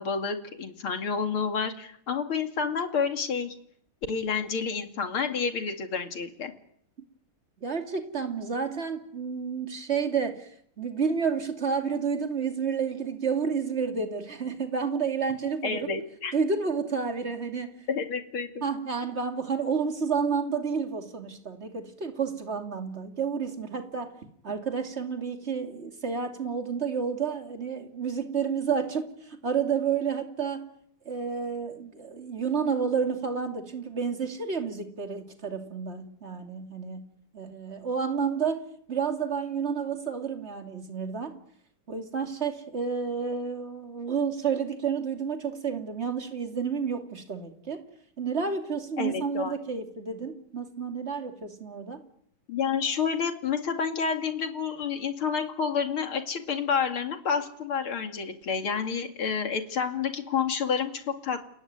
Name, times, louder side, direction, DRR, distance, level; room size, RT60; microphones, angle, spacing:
voice 1, 0.0-3.6 4.1-6.5 15.6-16.3 17.9-18.5 49.0-49.5 52.5-61.4, left 6 dB, 70° left, 6 dB, 3.2 m, -29 dB
voice 2, 7.6-15.9 16.3-17.8 18.6-24.1 24.4-30.7 31.0-41.4 41.9-47.8 48.2-52.0, right 6 dB, 30° right, 5 dB, 2.8 m, -30 dB
29.5 x 17.0 x 9.5 m, 0.70 s
omnidirectional pair, 2.4 m